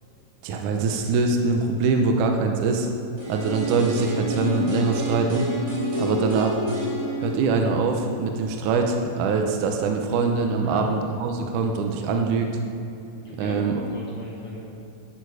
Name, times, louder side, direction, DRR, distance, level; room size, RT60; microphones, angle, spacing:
voice 1, 0.4-2.9 3.3-5.5 6.0-6.6 7.2-12.5 13.4-13.8, right 4 dB, 75° right, 3 dB, 2.2 m, -23 dB
sound 1, 3.2-9.1 9.4-9.5, left 1 dB, 35° right, 3.7 m, -30 dB
voice 2, 10.6-11.2 13.2-14.7, left 2 dB, 50° left, -4 dB, 1.4 m, -38 dB
12.0 x 9.0 x 4.9 m, 2.8 s
omnidirectional pair, 3.9 m